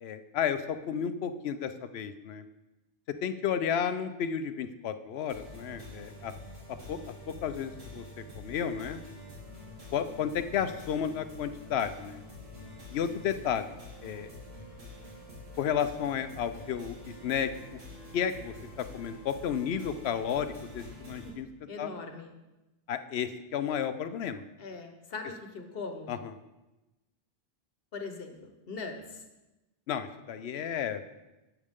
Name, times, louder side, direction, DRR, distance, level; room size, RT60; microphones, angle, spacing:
voice 1, 0.0-2.5 3.2-6.3 6.9-7.0 7.4-8.0 8.4-9.0 9.9-12.2 12.9-13.6 14.0-14.3 15.6-17.8 18.1-21.5 21.8-21.9 22.9-24.4 26.1-26.2 29.9-31.0, left 8 dB, 85° left, 11 dB, 0.9 m, -32 dB
sound 1, 5.3-21.3, left 2 dB, 80° right, 3.1 m, -47 dB
voice 2, 21.7-22.3 24.6-26.2 27.9-29.2 30.5-30.6, left 3 dB, 70° left, 5 dB, 1.2 m, -41 dB
11.5 x 8.2 x 3.6 m, 1.0 s
omnidirectional pair, 1.0 m